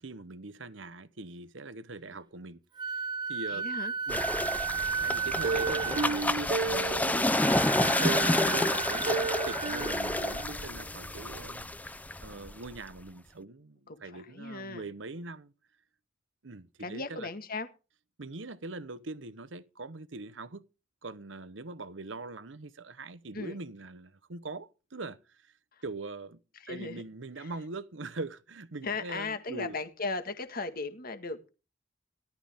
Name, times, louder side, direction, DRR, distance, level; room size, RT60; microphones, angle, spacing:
voice 1, 0.0-3.6 4.1-4.3 5.0-7.4 7.8-15.5 16.4-17.3 18.2-20.6 21.0-25.5 25.8-26.4 26.7-29.8, right 3 dB, 70° right, 1.0 m, -42 dB
Wind instrument woodwind instrument, 2.8-10.5, right 5 dB, 25° right, 0.8 m, -35 dB
voice 2, 3.5-3.9 13.9-14.9 16.8-17.7 23.3-23.6 25.7-25.8 26.6-27.0 27.4-27.5 28.8-31.5, left 3 dB, 50° left, 1.8 m, -37 dB
sound 1, 4.1-13.0, left 1 dB, 10° left, 0.6 m, -29 dB
Plucked string instrument, 5.4-7.4 8.0-10.8 11.2-11.3 11.6-11.7, right 4 dB, 55° right, 0.7 m, -34 dB
18.0 x 12.0 x 3.6 m
head